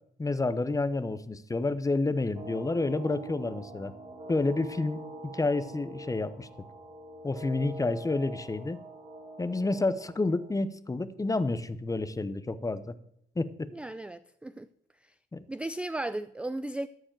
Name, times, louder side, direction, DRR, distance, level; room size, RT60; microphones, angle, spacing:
voice 1, 0.2-3.9 4.3-5.0 5.3-6.5 7.2-8.8 9.4-12.9 13.4-13.7 15.3-15.4, left 3 dB, 15° left, 0.7 m, -29 dB
sound 1, 2.3-10.5, right 1 dB, 20° right, 3.1 m, -44 dB
voice 2, 13.7-14.7 15.5-16.9, right 1 dB, 5° right, 0.3 m, -35 dB
13.5 x 4.9 x 7.5 m
cardioid pair, 90°, 20 cm